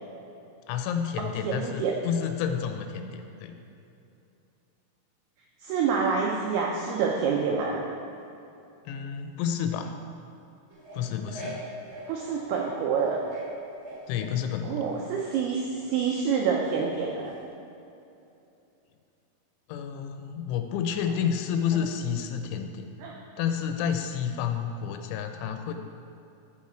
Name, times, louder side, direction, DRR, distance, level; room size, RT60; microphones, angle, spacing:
voice 1, 0.7-3.6 8.9-9.9 10.9-11.6 14.1-14.9 19.7-22.9 23.4-25.7, left 8 dB, 90° left, 6 dB, 3.1 m, -30 dB
voice 2, 1.2-2.0 5.6-7.8 12.1-13.2 14.6-17.3 23.0-23.1, right 6 dB, 85° right, -1 dB, 2.3 m, -27 dB
sound 1, 10.7-12.8 13.1-14.4 14.8-15.3 17.3-17.4, equal, 50° right, 1.6 m, -41 dB
13.5 x 4.8 x 4.4 m, 2.8 s
omnidirectional pair, 5.4 m